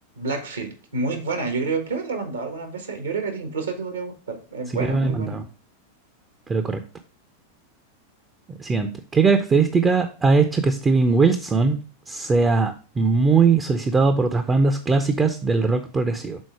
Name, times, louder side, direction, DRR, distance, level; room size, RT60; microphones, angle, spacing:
voice 1, 0.1-5.4, right 4 dB, 70° right, 5 dB, 1.3 m, -29 dB
voice 2, 4.7-5.4 6.5-6.8 8.6-11.8 12.1-16.4, right 4 dB, 20° right, 8 dB, 0.6 m, -20 dB
6.3 x 4.0 x 4.7 m, 0.37 s
figure-of-eight pair, 90°, 0 cm